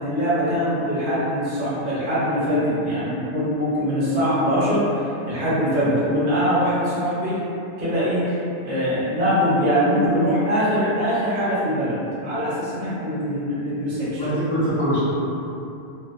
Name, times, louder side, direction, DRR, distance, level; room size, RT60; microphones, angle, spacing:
voice 1, 0.0-7.5 7.8-14.3, equal, 45° right, -10 dB, 0.8 m, -22 dB
voice 2, 14.0-15.0, equal, 55° left, -11 dB, 0.8 m, -23 dB
2.6 x 2.1 x 2.4 m, 2.7 s
omnidirectional pair, 1.2 m